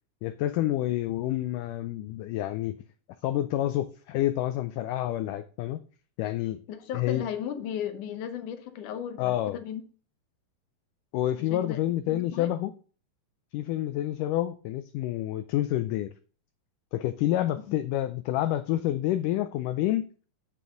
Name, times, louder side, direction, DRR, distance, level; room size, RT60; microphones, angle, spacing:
voice 1, 0.2-2.8 3.2-5.8 6.2-6.6 6.9-7.2 9.2-9.6 11.1-12.7 13.5-16.1 16.9-20.1, left 13 dB, 85° left, 11 dB, 1.8 m, -28 dB
voice 2, 6.7-9.8 11.5-11.8 12.1-12.5 17.7-17.8, left 9 dB, 70° left, 8 dB, 2.1 m, -35 dB
8.4 x 7.4 x 3.8 m, 0.38 s
omnidirectional pair, 4.3 m